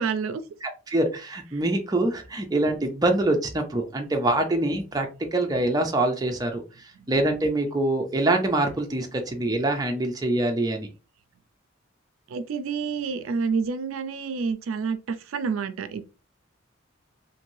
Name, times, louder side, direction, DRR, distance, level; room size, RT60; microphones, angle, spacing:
voice 1, 0.0-0.4 1.5-1.6 7.0-7.1 12.3-16.0, right 5 dB, 85° right, 0.4 m, -28 dB
voice 2, 0.6-10.9, right 2 dB, 20° right, 0.4 m, -25 dB
3.1 x 2.6 x 2.6 m
head